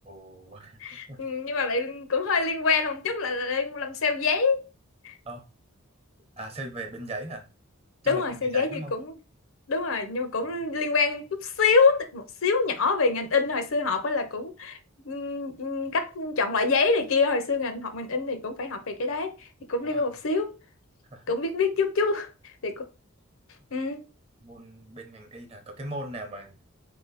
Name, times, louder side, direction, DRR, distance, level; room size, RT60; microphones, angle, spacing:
voice 1, 0.1-0.8 1.1-1.2 5.2-5.5 6.4-7.5 8.0-8.9 19.8-20.1 21.1-21.2 24.4-26.6, right 1 dB, 30° right, 0.7 m, -39 dB
voice 2, 0.8-4.6 5.0-5.1 8.0-9.1 9.7-14.8 15.0-20.5 21.3-22.3 22.6-22.8 23.7-24.0, left 4 dB, 70° left, 0.7 m, -26 dB
4.3 x 2.8 x 4.0 m
head